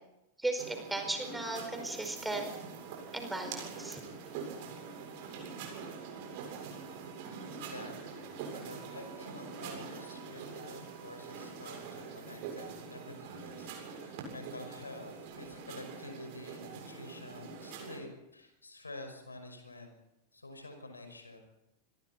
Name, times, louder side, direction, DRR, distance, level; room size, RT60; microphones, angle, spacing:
voice 1, 0.4-2.6 3.1-4.0, right 2 dB, 5° right, 5 dB, 4.9 m, -36 dB
sound 1, 0.6-18.0, right 5 dB, 45° right, 7.5 m, -44 dB
voice 2, 7.6-19.9 20.3-21.4, left 2 dB, 80° left, 5 dB, 5.7 m, -49 dB
27.5 x 22.0 x 4.4 m, 0.87 s
figure-of-eight pair, 90°, 0 cm